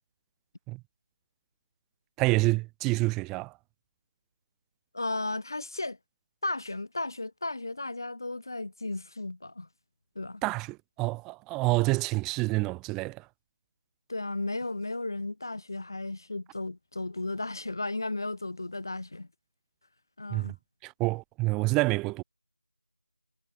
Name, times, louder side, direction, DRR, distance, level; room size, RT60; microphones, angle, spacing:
voice 1, 2.2-3.5 10.4-13.2 20.3-20.5 20.8-22.2, right 23 dB, 5° right, 2.4 m, -28 dB
voice 2, 4.9-6.0 6.4-9.7 10.2-10.4 14.1-19.3 20.2-20.5, left 2 dB, 45° left, 4.1 m, -34 dB
figure-of-eight pair, 165°, 3 cm